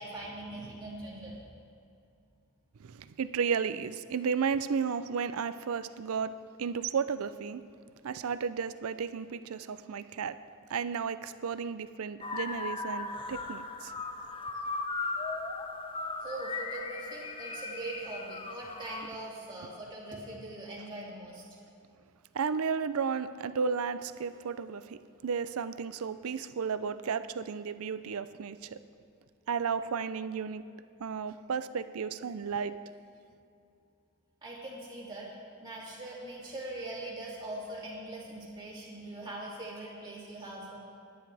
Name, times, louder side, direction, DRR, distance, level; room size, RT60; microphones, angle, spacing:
voice 1, 0.0-1.5 16.2-21.4 34.4-35.3 35.6-40.8, right 2 dB, 20° right, -6 dB, 2.9 m, -41 dB
voice 2, 2.8-7.6 8.0-10.4 10.7-13.9 22.3-28.8 29.5-30.6 31.0-32.8, right 6 dB, 70° right, 13 dB, 0.5 m, -33 dB
sound 1, 12.2-19.1, left 3 dB, 25° left, 0.6 m, -37 dB
19.5 x 10.0 x 3.4 m, 2.5 s
head